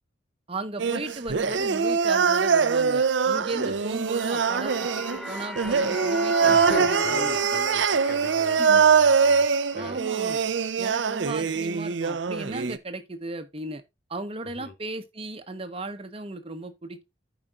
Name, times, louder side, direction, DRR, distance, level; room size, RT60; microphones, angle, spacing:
voice 1, 0.5-7.5 8.6-8.8 9.7-10.4 10.8-13.8 14.1-17.0, right 2 dB, 30° right, 1.1 m, -36 dB
sound 1, 0.8-12.8, right 5 dB, 80° right, 0.6 m, -23 dB
sound 2, 3.7-10.7, equal, ahead, 0.7 m, -38 dB
voice 2, 6.4-9.5 9.7-10.0 14.4-14.7, left 1 dB, 55° left, 2.1 m, -38 dB
14.0 x 5.1 x 2.5 m
head